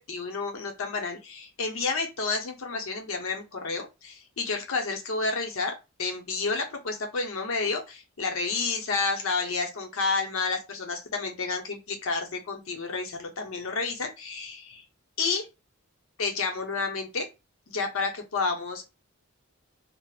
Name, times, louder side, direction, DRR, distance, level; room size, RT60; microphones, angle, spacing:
voice 1, 0.1-14.8 15.2-15.5 16.2-17.3 17.7-18.8, left 4 dB, 65° left, 3 dB, 0.7 m, -30 dB
2.3 x 2.0 x 3.3 m, 0.26 s
head